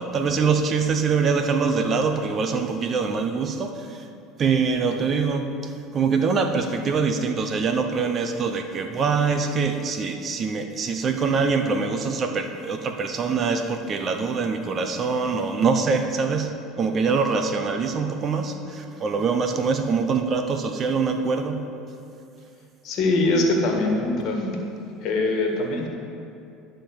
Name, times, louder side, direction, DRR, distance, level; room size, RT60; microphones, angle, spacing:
voice 1, 0.0-4.0 4.4-5.5 5.9-16.5 16.8-21.6, right 5 dB, 40° right, 6 dB, 0.8 m, -24 dB
voice 2, 22.8-24.7 25.0-25.9, left 2 dB, 60° left, 2 dB, 1.5 m, -23 dB
11.5 x 3.8 x 7.0 m, 2.7 s
supercardioid pair, 100°, 0 cm